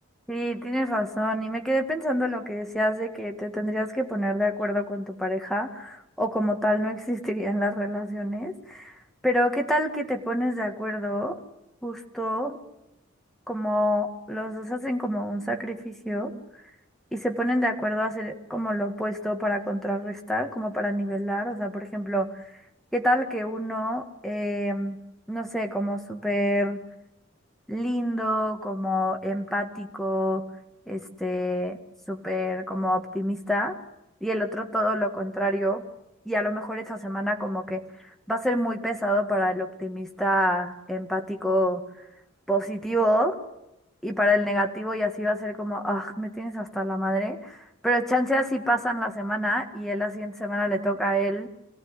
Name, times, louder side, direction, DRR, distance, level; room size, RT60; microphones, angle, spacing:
voice 1, 0.3-8.9 9.2-11.4 11.8-12.6 13.5-16.4 17.1-22.3 22.9-25.0 25.3-26.8 27.7-30.4 30.9-31.8 32.1-33.7 34.2-35.8 36.3-37.8 38.3-41.8 42.5-43.4 44.0-51.5, equal, ahead, 3 dB, 2.0 m, -27 dB
25.5 x 17.0 x 9.8 m, 0.87 s
head